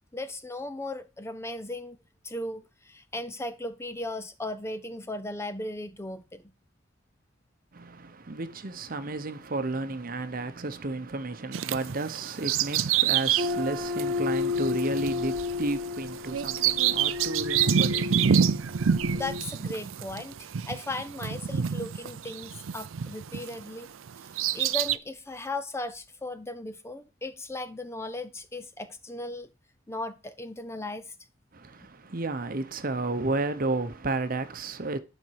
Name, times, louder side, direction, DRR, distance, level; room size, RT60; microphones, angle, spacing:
voice 1, 0.1-2.0 2.2-6.4 19.1-23.9 24.5-29.5 29.9-31.1, left 2 dB, 15° left, 0.5 m, -37 dB
voice 2, 7.7-19.2 31.5-35.0, right 2 dB, 45° right, 0.9 m, -32 dB
Bird vocalization bird call bird song, 11.5-23.6 24.1-25.0, right 8 dB, 85° right, 0.5 m, -27 dB
sound 1, 13.4-19.4, left 5 dB, 25° right, 1.4 m, -32 dB
10.5 x 5.3 x 4.7 m
head